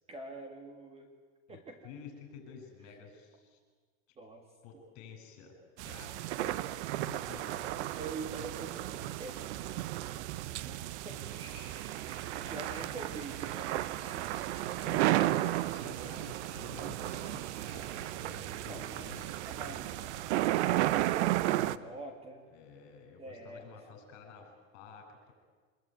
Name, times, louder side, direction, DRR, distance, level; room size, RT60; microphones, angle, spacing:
voice 1, 0.1-1.1 1.5-1.8 2.9-3.0 4.2-4.4 7.9-10.2 10.5-11.3 12.1-14.7 18.7-19.0 19.4-22.4 23.2-23.8, right 3 dB, 15° right, 4 dB, 2.1 m, -46 dB
voice 2, 1.8-3.6 4.6-5.6 5.8-7.9 12.1-12.9 14.7-19.8 22.5-25.3, left 6 dB, 45° left, 4 dB, 7.9 m, -51 dB
sound 1, 5.8-21.8, right 15 dB, 55° right, 0.9 m, -34 dB
sound 2, 11.2-19.6, right 1 dB, 30° right, 7.6 m, -57 dB
26.0 x 21.5 x 9.4 m, 1.5 s
supercardioid pair, 160°, 41 cm